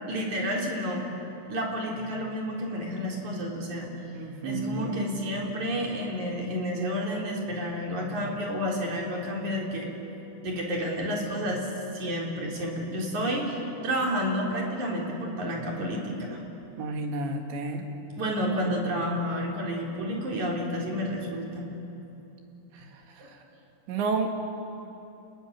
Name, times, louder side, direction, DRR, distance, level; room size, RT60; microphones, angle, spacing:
voice 1, 0.1-1.0 1.5-3.9 4.4-9.9 10.4-11.7 11.9-16.4 18.2-21.7 23.2-23.3, equal, 45° right, -1 dB, 4.9 m, -30 dB
voice 2, 4.1-5.0 16.8-17.9 23.9-24.4, right 3 dB, 90° right, 3 dB, 4.6 m, -30 dB
29.0 x 21.0 x 9.0 m, 3.0 s
omnidirectional pair, 4.9 m